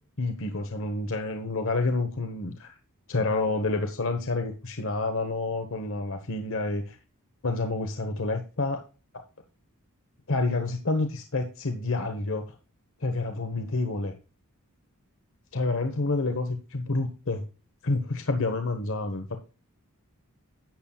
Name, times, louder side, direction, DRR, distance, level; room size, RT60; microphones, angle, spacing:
voice 1, 0.2-2.7 3.1-7.0 7.4-8.8 10.3-12.4 13.0-14.1 15.5-17.4 17.8-19.4, left 3 dB, 65° left, 7 dB, 1.2 m, -28 dB
11.5 x 8.6 x 2.4 m, 0.34 s
head